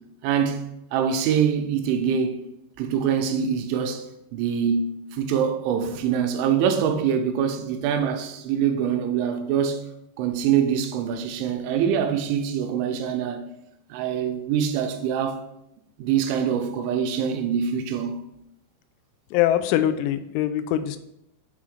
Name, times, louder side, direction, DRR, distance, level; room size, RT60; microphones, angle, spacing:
voice 1, 0.2-2.4 2.8-4.1 4.3-9.8 10.2-13.5 13.9-15.4 16.0-18.2, right 8 dB, 85° right, 3.0 m, -24 dB
voice 2, 19.3-21.0, left 12 dB, 85° left, 3.0 m, -23 dB
7.6 x 3.6 x 4.9 m
omnidirectional pair, 5.5 m